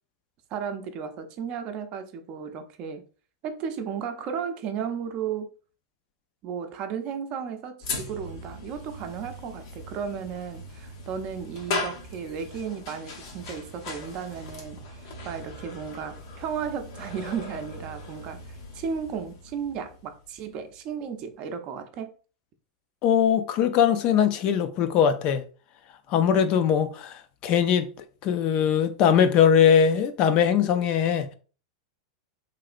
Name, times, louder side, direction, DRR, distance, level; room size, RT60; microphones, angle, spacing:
voice 1, 0.5-3.0 3.4-5.5 6.4-18.4 18.7-22.1, right 7 dB, 45° right, 0.5 m, -34 dB
sound 1, 7.8-21.1, left 3 dB, 65° left, 0.8 m, -39 dB
voice 2, 23.0-25.4 26.1-31.3, left 8 dB, 45° left, 0.4 m, -21 dB
3.1 x 2.8 x 2.4 m
hypercardioid pair, 120°, 2 cm